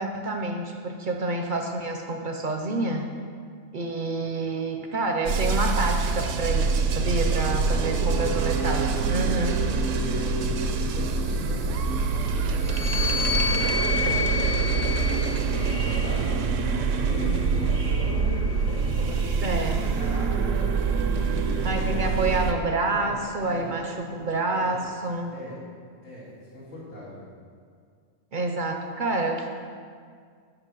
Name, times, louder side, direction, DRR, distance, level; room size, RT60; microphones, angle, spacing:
voice 1, 0.0-3.1 3.7-9.6 19.4-19.8 21.6-25.3 28.3-29.5, right 2 dB, 50° right, 4 dB, 0.6 m, -28 dB
sound 1, 5.3-22.5, right 4 dB, 80° right, 1.0 m, -25 dB
voice 2, 7.6-8.0 8.7-18.4 18.6-20.7 20.9-23.1 23.4-23.7 24.5-24.8 25.3-25.6 26.0-27.2, equal, 80° left, -8 dB, 2.2 m, -39 dB
sound 2, 12.6-16.2 17.0-18.6, left 6 dB, 60° left, 1.9 m, -31 dB
7.9 x 5.2 x 6.1 m, 2.1 s
omnidirectional pair, 1.3 m